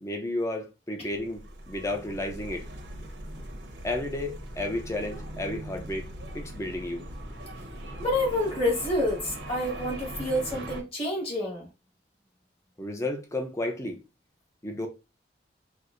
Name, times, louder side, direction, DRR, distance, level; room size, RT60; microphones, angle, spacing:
voice 1, 0.0-2.7 3.8-6.1 6.3-7.1 12.8-14.0 14.6-14.9, left 1 dB, 15° left, 0.6 m, -32 dB
sound 1, 1.0-10.8, right 1 dB, 80° right, 0.9 m, -40 dB
voice 2, 8.0-11.7, left 1 dB, 30° left, 1.5 m, -28 dB
4.3 x 2.1 x 2.5 m
head